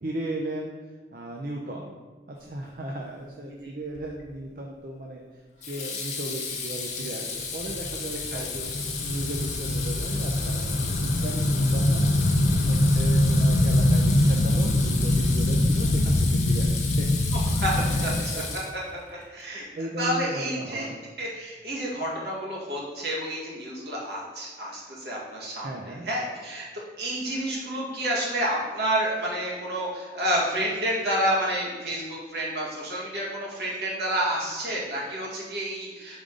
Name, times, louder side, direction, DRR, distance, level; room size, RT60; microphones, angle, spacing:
voice 1, 0.0-0.8 1.1-1.9 2.3-17.1 17.7-18.1 18.3-18.4 19.1-19.3 19.8-21.0 25.6-26.1, right 1 dB, 50° right, -1 dB, 0.5 m, -36 dB
voice 2, 3.4-3.7 8.3-8.5 17.6-17.7 18.0-18.3 19.3-20.8 21.2-26.7 27.0-36.2, right 1 dB, 70° right, -5 dB, 1.6 m, -29 dB
Water tap faucet / Sink (filling or washing), 4.0-4.3 5.6-19.0, left 5 dB, 40° left, 0.8 m, -34 dB
sound 1, 7.4-18.2, left 1 dB, 80° left, 0.5 m, -23 dB
5.1 x 3.7 x 5.2 m, 1.3 s
head